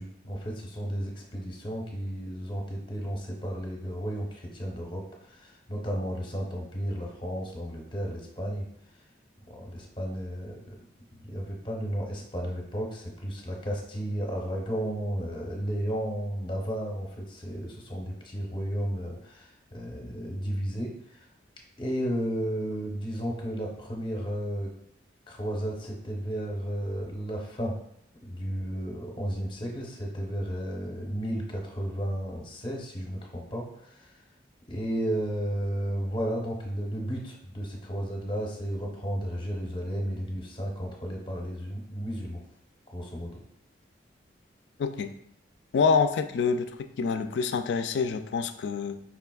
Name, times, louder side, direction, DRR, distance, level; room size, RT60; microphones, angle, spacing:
voice 1, 0.0-8.7 9.5-10.7 11.1-21.3 21.8-24.7 25.3-27.7 28.2-34.1 34.7-42.4 42.9-43.4, equal, 25° left, 0 dB, 0.7 m, -33 dB
voice 2, 44.8-45.1 45.7-46.7 47.0-49.0, left 5 dB, 65° left, 9 dB, 0.3 m, -26 dB
4.8 x 3.3 x 2.3 m, 0.72 s
head